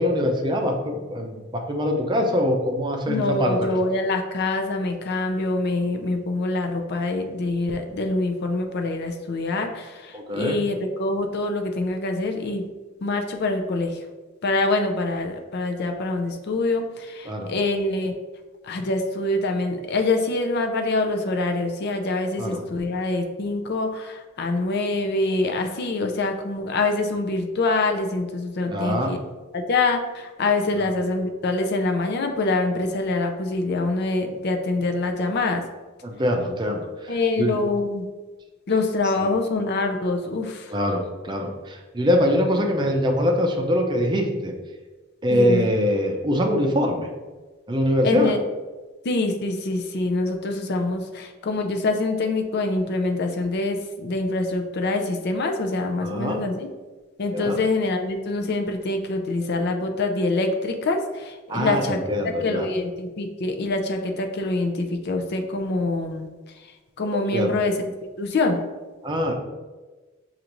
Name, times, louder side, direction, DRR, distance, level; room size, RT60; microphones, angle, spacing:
voice 1, 0.0-3.7 10.1-10.6 17.2-17.5 22.4-22.6 28.7-29.1 30.8-30.9 36.0-37.1 37.4-37.6 40.7-44.5 45.2-47.1 47.7-48.3 56.0-56.4 57.3-57.6 61.5-62.7 67.3-67.5 69.0-69.3, equal, 25° right, 2 dB, 0.5 m, -23 dB
voice 2, 3.1-12.7 13.0-14.0 14.4-18.1 18.6-29.2 29.5-35.6 37.1-38.0 38.7-40.7 45.3-45.7 48.0-48.4 49.0-56.7 57.2-62.0 62.2-66.3 67.0-67.9 68.2-68.6, left 2 dB, 55° left, 5 dB, 0.5 m, -25 dB
6.5 x 2.5 x 3.0 m, 1.3 s
head